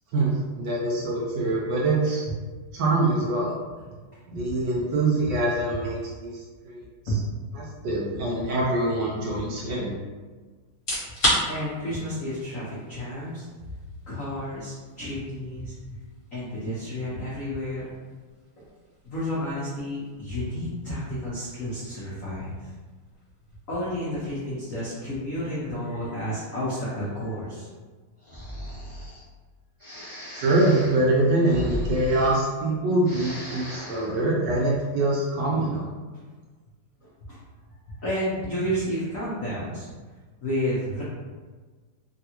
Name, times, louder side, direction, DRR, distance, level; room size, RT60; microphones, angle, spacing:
voice 1, 0.1-2.3 2.7-3.5 4.3-7.2 7.5-10.0 30.3-35.9, right 2 dB, 75° right, -4 dB, 1.1 m, -24 dB
sound 1, 10.7-25.5, equal, 40° left, 1.4 m, -36 dB
voice 2, 11.5-13.5 14.1-15.7 16.3-17.9 18.6-18.7 19.0-22.7 23.7-27.7 34.4-34.5 37.0-37.4 37.9-39.9 40.4-41.0, equal, 80° left, -8 dB, 0.7 m, -31 dB
Breathing, 28.2-29.2 29.8-32.7 33.0-34.1, equal, 25° right, 0.6 m, -36 dB
3.4 x 2.3 x 2.8 m, 1.4 s
omnidirectional pair, 2.3 m